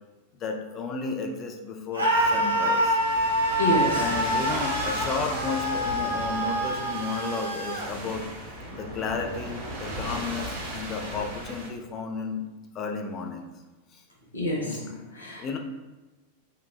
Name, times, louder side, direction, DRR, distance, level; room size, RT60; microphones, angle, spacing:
voice 1, 0.4-3.0 3.9-8.3 8.7-12.4 12.7-13.5 15.4-15.6, left 4 dB, 30° left, 3 dB, 0.3 m, -33 dB
Screaming, 1.9-7.9, right 1 dB, 85° right, 0.4 m, -26 dB
sound 1, 2.1-11.7, right 1 dB, 50° right, 0.7 m, -37 dB
voice 2, 3.6-4.1 14.3-15.6, left 1 dB, 75° left, -3 dB, 0.6 m, -28 dB
2.9 x 2.1 x 2.3 m, 1.1 s
figure-of-eight pair, 90°, 0 cm